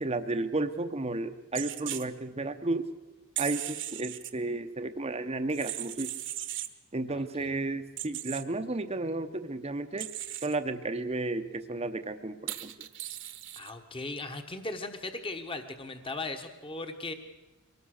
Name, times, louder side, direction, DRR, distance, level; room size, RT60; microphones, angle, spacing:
voice 1, 0.0-2.8 3.4-6.1 6.9-10.1 10.4-12.9, right 2 dB, 30° right, 8 dB, 0.8 m, -33 dB
sound 1, 1.6-2.1 3.4-4.3 5.5-6.7 8.0-8.4 10.0-10.6 12.5-13.7, right 13 dB, 55° right, 1.2 m, -37 dB
voice 2, 7.1-7.5 13.6-17.1, left 2 dB, 25° left, 6 dB, 1.2 m, -38 dB
23.5 x 18.5 x 6.5 m, 1.1 s
head